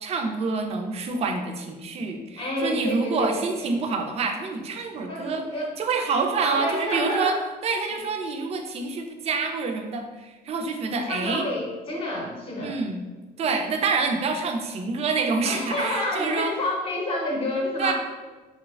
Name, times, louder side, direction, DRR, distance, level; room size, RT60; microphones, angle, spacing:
voice 1, 0.0-5.4 5.8-7.4 7.6-11.4 12.6-13.0 13.4-16.5 17.8-17.9, right 4 dB, 40° right, 4 dB, 0.4 m, -27 dB
voice 2, 2.4-3.8 5.1-5.6 6.4-7.4 7.9-8.0 10.9-12.8 15.4-17.9, left 1 dB, 35° left, -2 dB, 0.7 m, -29 dB
3.1 x 2.1 x 2.3 m, 1.3 s
cardioid pair, 110°, 17 cm